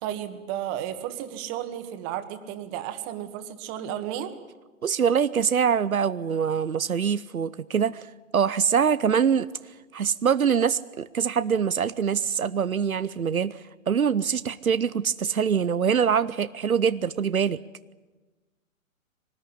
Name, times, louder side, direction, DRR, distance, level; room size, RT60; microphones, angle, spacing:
voice 1, 0.0-4.4, right 11 dB, 30° right, 8 dB, 1.9 m, -33 dB
voice 2, 4.8-8.1 8.3-9.5 9.9-13.6 13.9-17.6, right 7 dB, 90° right, 14 dB, 0.8 m, -24 dB
22.5 x 19.0 x 9.9 m, 1.3 s
figure-of-eight pair, 125°, 41 cm